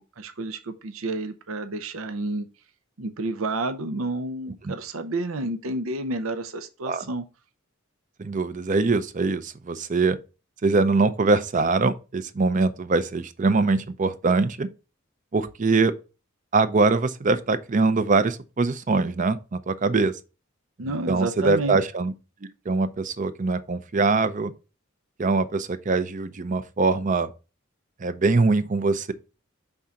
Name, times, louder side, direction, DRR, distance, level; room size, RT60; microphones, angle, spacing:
voice 1, 0.0-2.5 3.0-7.2 20.8-21.8, right 2 dB, 85° right, 0.6 m, -30 dB
voice 2, 8.2-10.2 10.6-14.7 15.3-15.9 16.5-20.1 21.1-22.1 22.7-24.5 25.2-27.3 28.0-29.1, right 3 dB, 40° right, 0.5 m, -23 dB
5.4 x 3.7 x 5.8 m
head